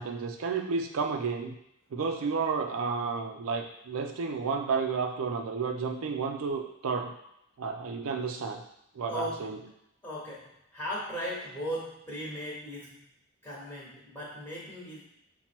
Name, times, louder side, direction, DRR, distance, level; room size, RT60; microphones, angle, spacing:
voice 1, 0.0-1.6 1.9-7.1 7.6-8.6 8.9-9.6, right 5 dB, 75° right, 4 dB, 0.4 m, -31 dB
voice 2, 9.1-9.5 10.0-13.1 13.4-15.0, equal, 5° left, -8 dB, 1.1 m, -37 dB
5.8 x 2.1 x 4.3 m, 0.81 s
head